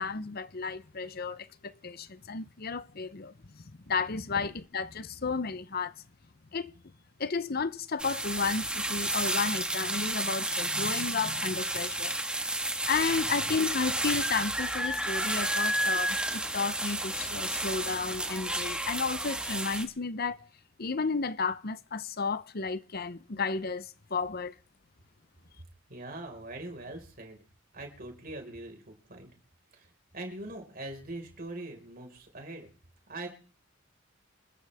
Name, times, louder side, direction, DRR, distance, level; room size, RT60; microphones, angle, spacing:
voice 1, 0.0-5.9 6.5-6.7 7.2-12.2 12.8-20.4 20.8-24.5, left 4 dB, 50° left, 0.8 m, -33 dB
sound 1, 8.0-19.9, right 1 dB, 5° right, 1.7 m, -31 dB
voice 2, 25.9-27.4 27.7-29.3 29.7-32.7 33.1-33.3, right 2 dB, 50° right, 5.1 m, -42 dB
27.0 x 14.0 x 3.6 m
head